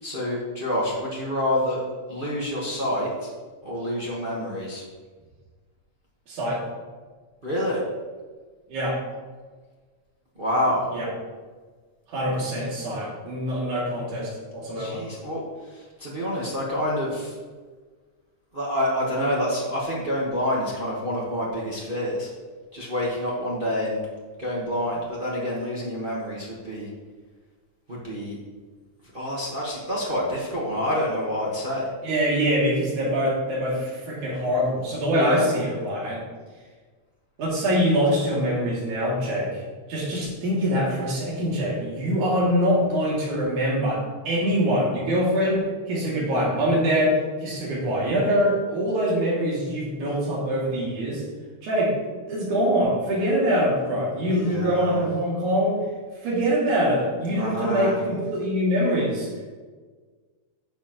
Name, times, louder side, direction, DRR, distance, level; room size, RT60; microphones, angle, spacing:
voice 1, 0.0-1.8 2.1-3.3 3.6-4.8 7.4-7.8 10.4-10.8 14.8-15.4 15.7-17.3 18.5-22.3 22.7-24.0 24.4-26.9 27.9-28.4 29.1-31.9 35.2-35.5 54.3-55.0 57.4-57.9, equal, 50° right, -5 dB, 0.6 m, -27 dB
voice 2, 6.3-6.6 8.7-9.0 10.9-11.1 12.1-15.0 32.0-36.2 37.4-39.6 39.9-51.2 51.6-52.0 52.3-55.8 56.2-59.4, equal, 75° right, -5 dB, 4.0 m, -24 dB
11.0 x 7.6 x 3.0 m, 1.4 s
omnidirectional pair, 3.5 m